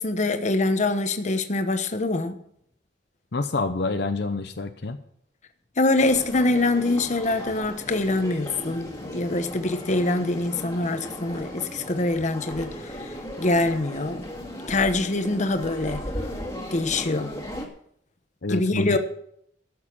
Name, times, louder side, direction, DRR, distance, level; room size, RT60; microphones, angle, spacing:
voice 1, 0.0-2.4 5.8-12.7 13.4-14.2 14.7-16.0 16.7-17.3 18.5-19.0, left 2 dB, 40° left, 8 dB, 1.0 m, -24 dB
voice 2, 3.3-5.0 18.4-19.0, left 3 dB, 65° left, 7 dB, 0.8 m, -27 dB
sound 1, 5.9-17.7, equal, 20° left, 2.1 m, -36 dB
13.0 x 6.6 x 7.5 m, 0.71 s
head